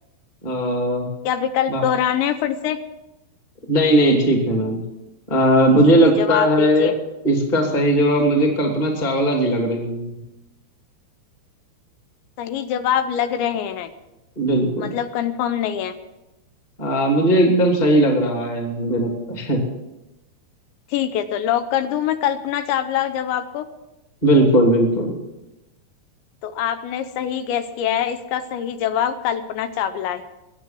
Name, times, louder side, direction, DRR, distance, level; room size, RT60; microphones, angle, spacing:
voice 1, 0.4-1.1 1.7-1.8 3.7-4.8 5.3-6.9 7.2-10.2 14.4-14.9 16.8-19.6 24.2-25.2, right 1 dB, 15° left, 1 dB, 1.8 m, -18 dB
voice 2, 1.3-2.8 5.8-6.9 12.4-13.9 14.8-15.9 20.9-23.7 26.4-30.2, left 9 dB, 80° left, 10 dB, 3.0 m, -24 dB
22.0 x 8.6 x 6.2 m, 0.98 s
omnidirectional pair, 5.2 m